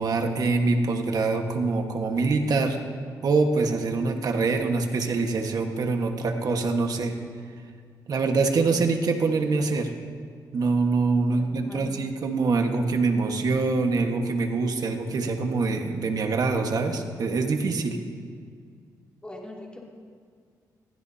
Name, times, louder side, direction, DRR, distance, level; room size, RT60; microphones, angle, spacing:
voice 1, 0.0-2.8 3.2-7.1 8.1-9.9 10.5-18.0, right 3 dB, 55° right, 4 dB, 1.5 m, -24 dB
voice 2, 11.3-11.9 19.2-19.8, left 1 dB, 15° left, -3 dB, 2.9 m, -42 dB
22.0 x 15.5 x 2.8 m, 2.1 s
cardioid pair, 95°, 7 cm